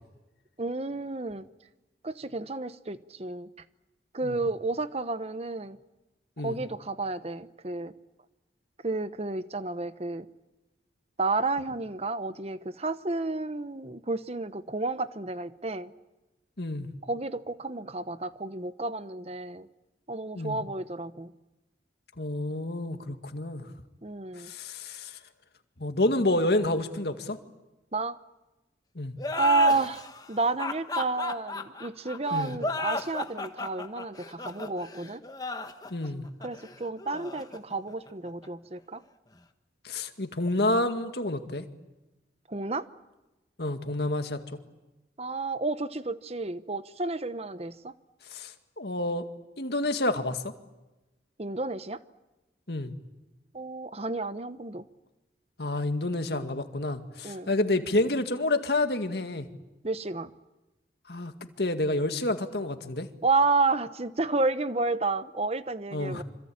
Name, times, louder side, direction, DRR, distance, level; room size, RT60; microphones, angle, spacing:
voice 1, 0.6-1.4 2.0-3.5 4.1-5.8 6.4-7.9 8.8-10.3 11.2-15.9 17.1-19.7 20.1-21.3 24.0-24.5 27.9-28.2 29.4-35.2 36.4-39.0 42.5-42.9 45.2-47.9 51.4-52.0 53.5-54.8 57.2-57.5 59.8-60.3 63.2-66.2, right 3 dB, 35° right, 1.0 m, -31 dB
voice 2, 16.6-16.9 20.4-20.6 22.2-23.7 24.4-25.2 25.8-27.4 29.0-29.1 32.3-32.6 35.9-36.3 39.8-41.7 43.6-44.6 48.3-49.3 49.6-50.5 52.7-52.9 55.6-59.5 61.1-63.1 65.9-66.2, left 2 dB, 60° left, 2.1 m, -29 dB
sound 1, 29.2-38.5, left 3 dB, 20° left, 1.4 m, -35 dB
26.0 x 26.0 x 8.7 m
head